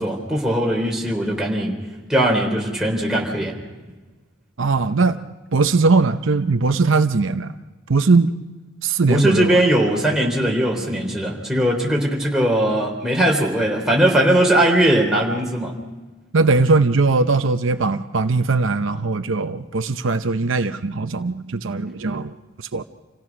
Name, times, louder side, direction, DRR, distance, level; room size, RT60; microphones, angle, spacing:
voice 1, 0.0-1.8 2.1-3.6 9.1-15.8, right 1 dB, 5° right, -2 dB, 3.6 m, -19 dB
voice 2, 4.6-7.5 7.9-8.4 8.8-9.6 16.3-22.3 22.7-22.8, right 3 dB, 75° right, 9 dB, 0.7 m, -19 dB
27.5 x 16.5 x 6.1 m, 1.3 s
head